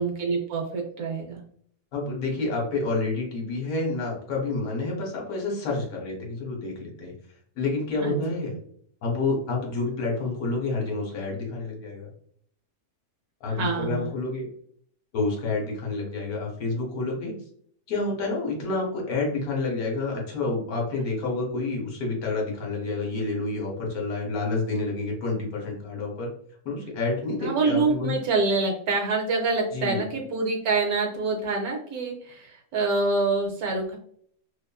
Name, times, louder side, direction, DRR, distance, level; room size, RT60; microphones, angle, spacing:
voice 1, 0.0-1.4 8.0-8.2 13.5-14.1 27.4-34.0, right 3 dB, 70° right, 1 dB, 1.0 m, -26 dB
voice 2, 1.9-7.1 7.6-8.5 9.0-12.1 13.4-14.5 15.1-17.3 17.9-26.3 26.6-28.2 29.7-30.0, left 3 dB, 65° left, -1 dB, 1.2 m, -29 dB
2.8 x 2.4 x 2.2 m, 0.63 s
omnidirectional pair, 1.7 m